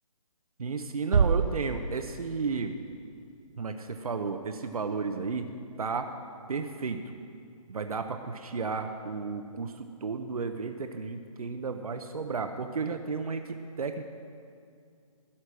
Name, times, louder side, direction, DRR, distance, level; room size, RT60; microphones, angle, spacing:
voice 1, 0.6-2.8 3.6-5.5 5.8-6.1 6.5-7.0 7.7-13.4 13.8-14.0, right 4 dB, 75° right, 7 dB, 0.9 m, -33 dB
sound 1, 1.1-3.1, right 6 dB, 60° right, 0.4 m, -28 dB
13.0 x 10.0 x 6.2 m, 2.3 s
hypercardioid pair, 175°, 19 cm